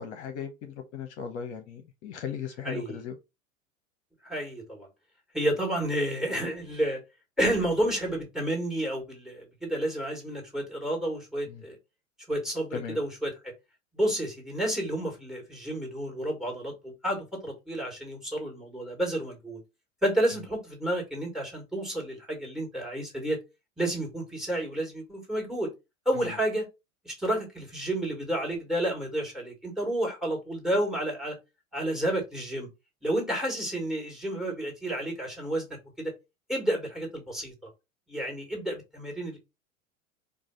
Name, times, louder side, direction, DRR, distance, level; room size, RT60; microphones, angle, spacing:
voice 1, 0.0-3.2 11.5-11.6 12.7-13.0 26.2-26.3, left 7 dB, 55° left, 0.8 m, -37 dB
voice 2, 2.6-3.0 4.2-4.9 5.3-7.0 7.4-11.8 12.3-13.3 13.9-19.6 20.0-23.4 23.8-25.7 26.1-26.7 27.1-31.4 31.7-32.7 33.0-35.7 36.0-36.1 36.5-37.7 38.1-39.4, right 1 dB, ahead, 1.8 m, -30 dB
4.8 x 2.3 x 3.7 m
figure-of-eight pair, 85°, 41 cm